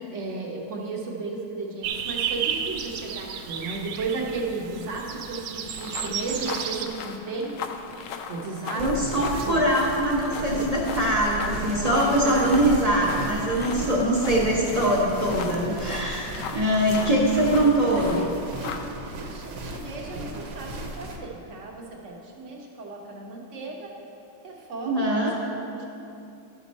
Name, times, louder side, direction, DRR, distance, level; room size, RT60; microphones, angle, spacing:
voice 1, 0.1-7.5 8.3-9.1 9.5-9.7 10.3-10.7 11.7-12.9 16.6-17.2 17.6-18.3 19.3-23.9 24.4-25.9, right 3 dB, 45° right, -1 dB, 1.1 m, -35 dB
sound 1, 1.8-6.9, right 8 dB, 90° right, 1.4 m, -32 dB
sound 2, 5.7-18.8, left 6 dB, 75° left, 1.1 m, -39 dB
voice 2, 8.8-18.2 24.8-25.3, right 1 dB, 30° right, -4 dB, 0.8 m, -23 dB
sound 3, 8.8-21.2, right 2 dB, 65° right, 1.3 m, -35 dB
12.5 x 5.4 x 4.1 m, 2.7 s
omnidirectional pair, 2.1 m